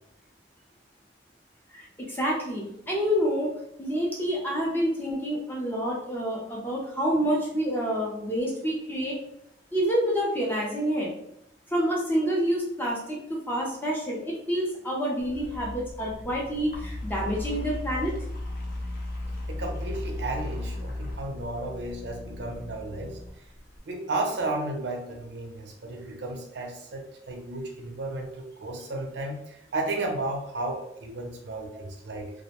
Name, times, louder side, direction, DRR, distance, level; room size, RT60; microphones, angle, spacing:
voice 1, 1.7-3.5 3.8-9.2 9.7-11.1 11.7-18.1, equal, 10° left, -3 dB, 0.5 m, -28 dB
sound 1, 15.2-23.8, left 1 dB, 50° left, 0.6 m, -36 dB
voice 2, 19.5-23.2 23.9-32.3, right 2 dB, 70° right, 1 dB, 0.5 m, -33 dB
2.5 x 2.0 x 2.9 m, 0.78 s
head